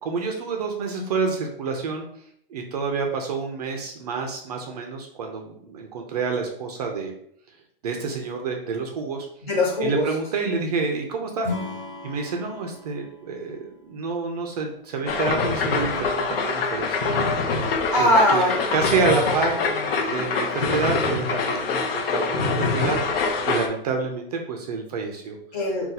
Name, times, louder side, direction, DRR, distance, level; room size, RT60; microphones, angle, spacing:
voice 1, 0.0-2.1 2.5-7.1 7.8-9.3 9.8-11.5 12.0-17.1 17.4-19.6 20.1-23.0 23.5-25.4, right 4 dB, 45° right, 2 dB, 0.4 m, -28 dB
voice 2, 9.4-10.1 17.9-20.0 25.5-25.9, left 1 dB, 40° left, -4 dB, 1.5 m, -23 dB
Acoustic guitar / Strum, 11.4-14.7, left 3 dB, 10° right, 0.9 m, -36 dB
sound 1, 15.1-23.7, left 4 dB, 90° left, 0.7 m, -25 dB
2.6 x 2.3 x 3.9 m, 0.68 s
supercardioid pair, 175°, 29 cm